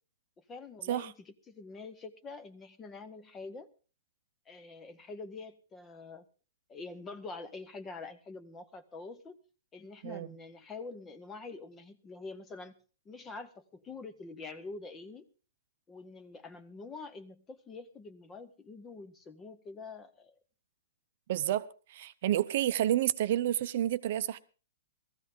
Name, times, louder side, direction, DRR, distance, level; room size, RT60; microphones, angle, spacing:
voice 1, 0.5-3.7 4.5-6.2 6.7-9.4 9.7-12.7 13.1-15.3 15.9-20.4, left 3 dB, 10° left, 0.6 m, -46 dB
voice 2, 10.0-10.3 21.3-24.4, right 12 dB, 40° right, 0.6 m, -30 dB
18.0 x 14.0 x 3.6 m
hypercardioid pair, 180°, 0 cm